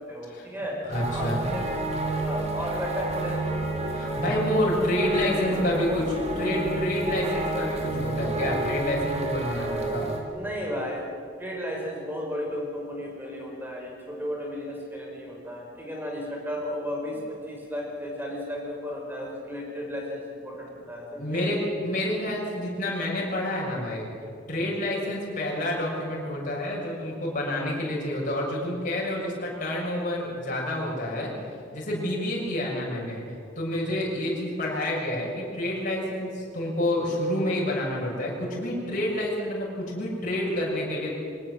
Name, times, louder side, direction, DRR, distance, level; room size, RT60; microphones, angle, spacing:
voice 1, 0.1-0.8 1.1-1.7 2.2-3.6 5.3-6.0 10.3-11.1 11.4-21.5, equal, 10° right, -1 dB, 5.9 m, -34 dB
voice 2, 0.9-1.4 3.9-6.0 6.3-10.1 21.2-24.0 24.5-31.3 31.7-33.2 33.5-41.1, left 1 dB, 45° left, -4 dB, 6.7 m, -28 dB
sound 1, 0.9-10.2, right 2 dB, 35° right, 3.2 m, -30 dB
23.5 x 19.0 x 8.0 m, 2.5 s
head